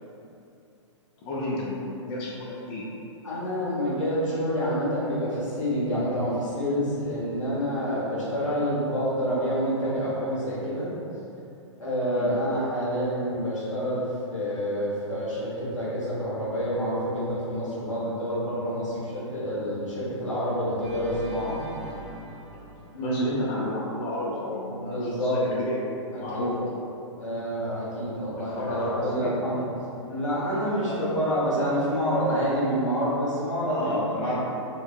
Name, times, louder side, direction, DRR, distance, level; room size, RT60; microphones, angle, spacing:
voice 1, 1.2-2.9 12.2-12.3 18.9-19.1 23.0-26.7 28.4-29.3 30.8-31.2 33.7-34.4, left 1 dB, 25° left, -5 dB, 0.5 m, -32 dB
voice 2, 3.2-10.9 11.8-14.0 14.3-21.6 22.9-23.2 24.7-25.3 26.1-26.5 27.2-29.6 30.1-34.4, equal, 80° left, -9 dB, 1.2 m, -28 dB
Organ, 20.8-23.9, right 3 dB, 55° right, 1.0 m, -42 dB
3.4 x 3.0 x 2.4 m, 2.7 s
figure-of-eight pair, 110°, 16 cm